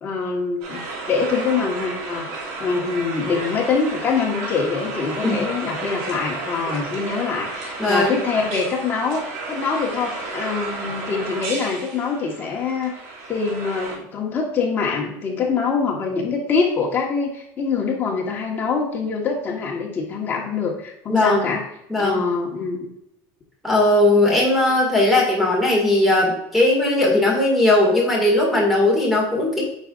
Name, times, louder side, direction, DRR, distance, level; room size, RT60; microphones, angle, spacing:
voice 1, 0.0-2.3 2.6-13.0 13.3-21.6 22.0-22.8, left 5 dB, 25° left, -1 dB, 1.4 m, -24 dB
sound 1, 0.6-14.0, right 3 dB, 85° right, 2.5 m, -32 dB
voice 2, 7.8-8.2 21.1-21.5 21.9-22.2 23.6-29.6, left 2 dB, ahead, -3 dB, 2.1 m, -18 dB
8.8 x 5.0 x 2.5 m, 0.79 s
cardioid pair, 165°, 8 cm